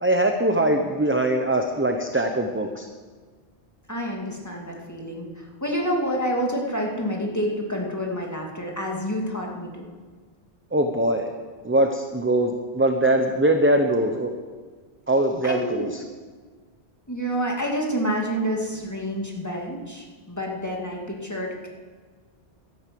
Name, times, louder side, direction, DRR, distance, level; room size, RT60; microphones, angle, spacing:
voice 1, 0.0-2.9 10.7-11.3 11.6-14.3 15.1-16.0, right 1 dB, 15° right, 4 dB, 0.8 m, -22 dB
voice 2, 3.9-9.9 15.4-15.9 17.1-21.7, equal, 15° left, -1 dB, 2.4 m, -28 dB
13.0 x 11.5 x 7.7 m, 1.5 s
omnidirectional pair, 1.1 m